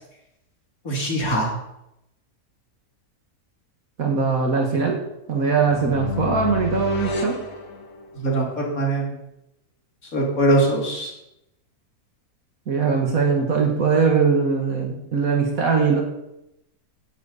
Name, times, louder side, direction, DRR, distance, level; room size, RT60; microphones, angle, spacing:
voice 1, 0.8-1.5 8.2-9.1 10.1-11.1, right 1 dB, 65° left, -1 dB, 3.3 m, -21 dB
voice 2, 4.0-5.0 5.3-7.4 12.7-16.0, right 5 dB, 65° right, 1 dB, 2.2 m, -21 dB
sound 1, 5.3-8.4, left 4 dB, 85° left, 2.1 m, -30 dB
16.0 x 10.5 x 4.2 m, 0.85 s
omnidirectional pair, 1.6 m